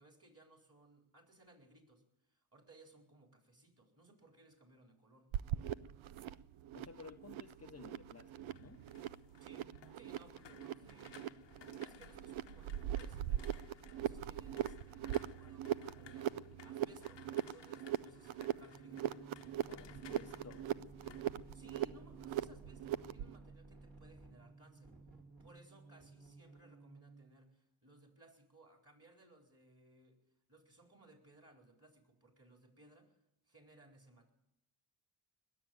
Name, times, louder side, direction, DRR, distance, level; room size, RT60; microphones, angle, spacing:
voice 1, 0.0-2.0 2.3-5.4 9.4-9.7 9.9-19.2 21.5-24.9 25.4-30.2 30.5-33.1 33.5-34.3, right 2 dB, 30° right, 4.4 m, -63 dB
sound 1, 5.3-23.4, right 12 dB, 85° right, 0.6 m, -41 dB
voice 2, 6.7-8.8 19.7-20.7, left 5 dB, 30° left, 0.8 m, -55 dB
sound 2, 8.2-22.2 22.5-22.9, left 9 dB, 65° left, 0.9 m, -60 dB
sound 3, 18.7-27.3, right 3 dB, 50° right, 4.9 m, -57 dB
20.5 x 7.5 x 9.3 m
cardioid pair, 50°, 48 cm